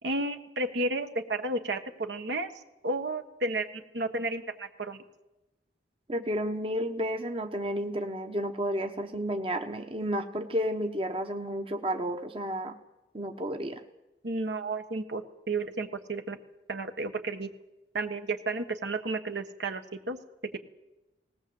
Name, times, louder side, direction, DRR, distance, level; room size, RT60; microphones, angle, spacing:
voice 1, 0.0-2.5 2.8-5.0 14.2-16.4 16.7-17.5 17.9-20.2, right 2 dB, 75° right, 6 dB, 1.5 m, -32 dB
voice 2, 6.1-12.8 13.1-13.8, equal, 30° right, 6 dB, 1.1 m, -31 dB
19.5 x 18.0 x 7.9 m, 0.99 s
head